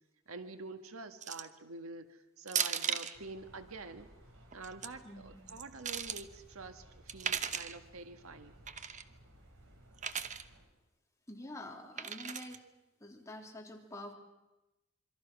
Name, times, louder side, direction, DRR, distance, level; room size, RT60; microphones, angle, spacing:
voice 1, 0.3-4.1 4.5-8.5, right 3 dB, 85° right, 8 dB, 1.7 m, -47 dB
sound 1, 1.2-1.6 2.5-3.2 4.5-4.9 5.5-6.2 7.1-7.8 8.7-9.0 10.0-10.4 12.0-12.6, right 7 dB, 35° right, 0.9 m, -36 dB
sound 2, 3.1-10.7, right 1 dB, 65° right, 4.7 m, -59 dB
voice 2, 5.0-5.4 11.3-12.6 13.0-14.1, left 1 dB, 15° left, 1 dB, 3.1 m, -47 dB
26.5 x 24.0 x 6.1 m, 1.0 s
head